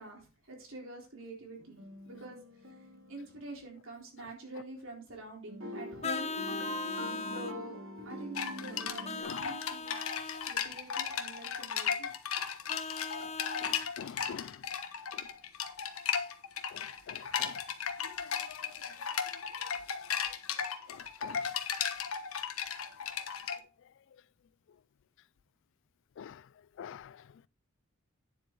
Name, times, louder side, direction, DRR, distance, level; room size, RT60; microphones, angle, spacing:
voice 1, 0.0-1.8 2.0-2.4 2.8-6.3 7.3-7.8 8.0-10.0 10.4-12.1, right 2 dB, 65° right, 3.8 m, -46 dB
sound 1, 1.6-4.0 5.5-9.2, equal, 85° right, 2.6 m, -44 dB
Vehicle horn car horn honking, 6.0-7.6 9.0-10.5 12.7-13.9, left 4 dB, 30° left, 0.7 m, -39 dB
sound 2, 8.4-23.6, left 7 dB, 85° left, 1.2 m, -36 dB
voice 2, 13.6-14.6 15.1-15.2 16.7-17.6 18.0-18.7 20.9-21.5 26.2-26.4 26.8-27.2, left 7 dB, 60° left, 0.3 m, -47 dB
9.6 x 7.5 x 3.8 m
head